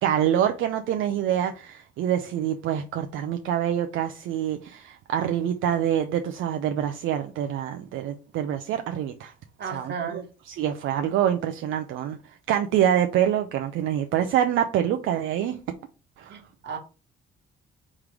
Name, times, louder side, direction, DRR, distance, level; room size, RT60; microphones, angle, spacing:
voice 1, 0.0-9.3 9.7-10.2 10.5-12.2 12.5-15.6 16.2-16.4, right 10 dB, 80° right, 0.5 m, -26 dB
voice 2, 9.6-10.2 16.3-16.8, right 6 dB, 60° right, 1.3 m, -34 dB
3.7 x 3.1 x 4.7 m
cardioid pair, 90°, 20 cm